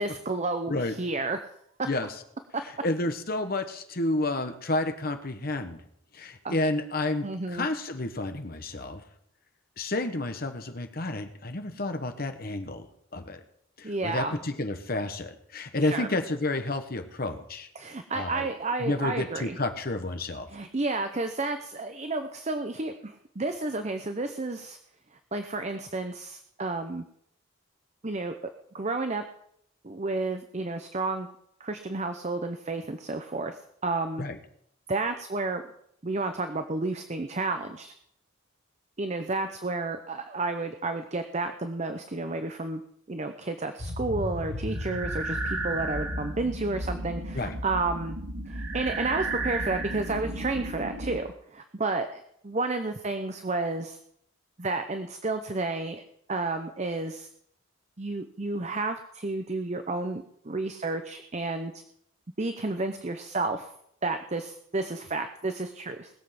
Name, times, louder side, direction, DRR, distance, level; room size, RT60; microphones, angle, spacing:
voice 1, 0.0-1.4 6.4-6.6 7.2-7.7 13.8-14.4 15.8-16.1 17.7-19.6 20.5-24.8 25.3-27.0 28.0-28.3 28.7-29.2 29.8-31.3 31.6-34.2 34.9-35.6 36.0-37.9 39.0-42.8 43.1-48.2 48.5-54.0 54.6-56.0 56.3-57.3 58.0-61.8 62.4-63.7 64.0-66.1, right 3 dB, 35° right, 8 dB, 0.7 m, -31 dB
voice 2, 2.8-5.8 6.1-9.0 9.8-12.9 13.1-13.4 13.8-17.7 18.1-18.5 18.8-20.5 34.2-34.4 47.3-47.5, left 2 dB, 45° left, 7 dB, 1.3 m, -30 dB
sound 1, 43.8-51.2, right 1 dB, 85° right, 6.6 m, -33 dB
20.0 x 7.4 x 5.9 m, 0.72 s
head